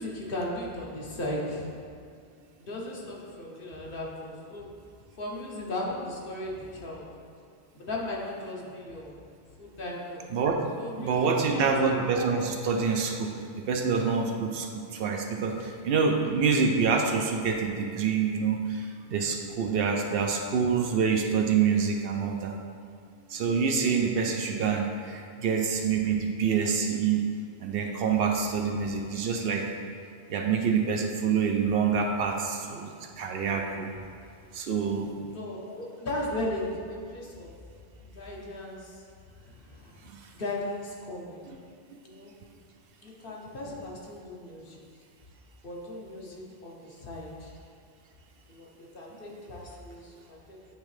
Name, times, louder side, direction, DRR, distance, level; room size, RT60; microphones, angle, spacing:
voice 1, 0.0-1.8 2.6-4.7 5.2-7.1 7.8-9.2 9.6-10.2 10.7-11.9 35.3-37.5 38.0-39.0 39.4-39.9 40.3-41.4 42.0-42.3 43.0-44.8 45.6-47.5 48.5-50.6, left 1 dB, 60° left, -3 dB, 1.1 m, -37 dB
voice 2, 10.3-10.7 11.0-22.5 23.3-27.2 27.6-29.7 30.3-33.9 34.5-35.2 40.1-40.2 41.9-42.0, right 5 dB, 70° right, 3 dB, 0.7 m, -27 dB
8.5 x 3.5 x 3.2 m, 2.3 s
omnidirectional pair, 1.0 m